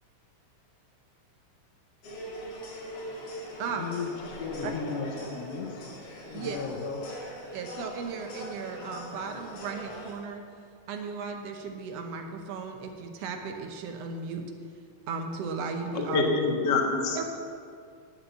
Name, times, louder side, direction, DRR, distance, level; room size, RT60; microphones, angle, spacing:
sound 1, 2.0-10.1, equal, 85° left, 3.6 m, -41 dB
voice 1, 3.8-5.9 6.3-7.0, left 5 dB, 65° left, 1 dB, 2.0 m, -35 dB
voice 2, 7.5-10.4 10.9-14.4 15.1-16.3 17.2-17.3, right 5 dB, 65° right, 5 dB, 1.9 m, -35 dB
voice 3, 15.9-17.2, left 3 dB, 45° left, 1 dB, 1.7 m, -26 dB
11.5 x 6.5 x 8.1 m, 2.3 s
omnidirectional pair, 3.3 m